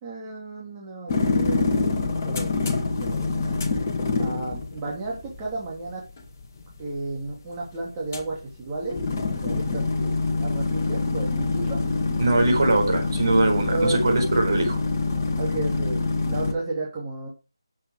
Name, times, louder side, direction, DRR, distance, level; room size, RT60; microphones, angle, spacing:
voice 1, 0.0-1.9 2.2-3.6 4.2-6.0 6.8-9.0 9.4-11.8 13.7-14.0 15.4-17.3, right 2 dB, 15° right, -4 dB, 2.9 m, -32 dB
sound 1, 1.1-16.5, left 3 dB, 30° left, 1.9 m, -26 dB
voice 2, 12.2-14.8, right 2 dB, 50° right, 3 dB, 4.4 m, -21 dB
11.5 x 7.7 x 4.9 m, 0.30 s
figure-of-eight pair, 160°, 3 cm